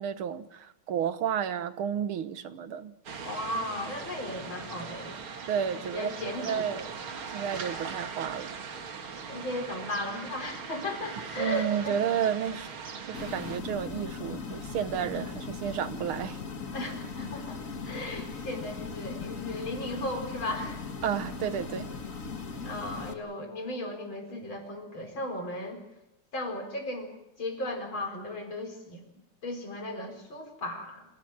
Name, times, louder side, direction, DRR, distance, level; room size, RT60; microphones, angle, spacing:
voice 1, 0.0-2.9 5.5-7.0 7.3-8.6 11.4-12.7 13.1-16.4 21.0-21.9, right 8 dB, 90° right, 12 dB, 2.1 m, -31 dB
sound 1, 3.1-13.6, right 5 dB, 75° right, 2.7 m, -40 dB
voice 2, 3.2-5.2 5.9-6.7 9.3-12.0 16.7-20.8 22.6-25.8 26.3-27.1 27.4-29.0 29.4-31.1, left 1 dB, 70° left, 3 dB, 5.4 m, -36 dB
sound 2, 13.1-23.1, left 5 dB, 40° left, 2.1 m, -38 dB
26.5 x 17.5 x 8.9 m, 0.90 s
omnidirectional pair, 2.3 m